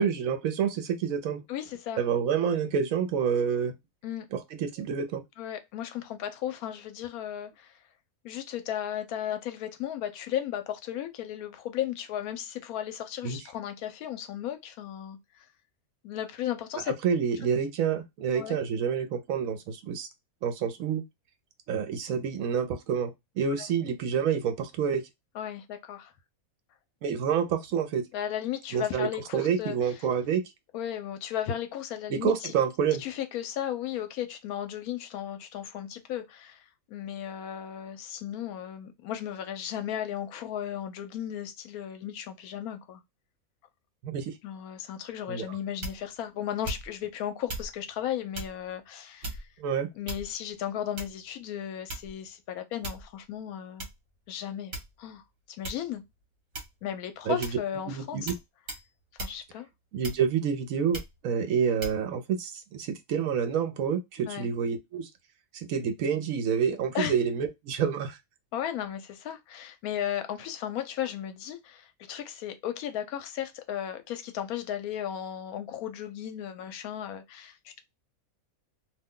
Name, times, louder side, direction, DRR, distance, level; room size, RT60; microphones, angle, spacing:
voice 1, 0.0-1.4 2.0-3.7 4.3-5.2 13.2-13.4 17.0-20.1 20.4-21.0 21.7-25.0 27.0-28.0 28.7-29.1 29.3-30.4 32.1-33.0 44.0-44.3 45.3-45.5 49.6-49.9 57.3-57.5 57.9-58.3 59.9-65.1 65.5-68.2, right 7 dB, 75° right, 1.0 m, -28 dB
voice 2, 1.5-2.0 4.0-4.3 5.4-7.7 8.2-15.4 16.0-17.0 18.3-18.6 23.6-23.7 25.3-26.1 28.1-29.8 30.7-32.5 33.0-36.6 36.9-43.0 44.4-49.4 50.0-53.9 54.3-55.2 55.6-56.0 56.8-58.2 59.2-59.7 64.3-64.5 66.9-67.1 68.5-77.8, left 10 dB, 80° left, 1.0 m, -35 dB
sound 1, 45.8-46.2 46.6-47.1 47.5-47.7 48.3-48.6 49.2-49.6 50.1-50.5 51.0-51.3 51.9-52.3 52.8-53.1 53.8-53.9 54.7-55.1 55.6-55.9 56.5-56.9 57.4-57.7 58.3-58.4 58.7-58.9 59.2-59.4 60.0-60.4 60.9-61.2 61.8-62.0, right 2 dB, 50° right, 1.1 m, -37 dB
2.6 x 2.2 x 3.5 m
omnidirectional pair, 1.5 m